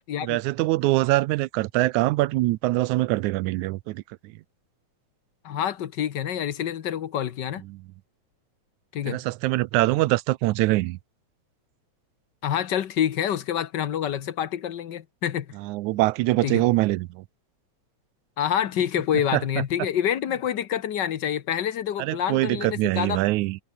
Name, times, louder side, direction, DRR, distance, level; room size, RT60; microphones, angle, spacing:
voice 1, 0.2-4.0 9.1-11.0 15.6-17.2 19.3-19.4 22.0-23.6, right 18 dB, 85° right, 2.1 m, -23 dB
voice 2, 5.4-7.6 8.9-9.2 12.4-15.6 16.4-16.6 18.4-23.2, left 10 dB, 65° left, 1.0 m, -27 dB
omnidirectional pair, 3.3 m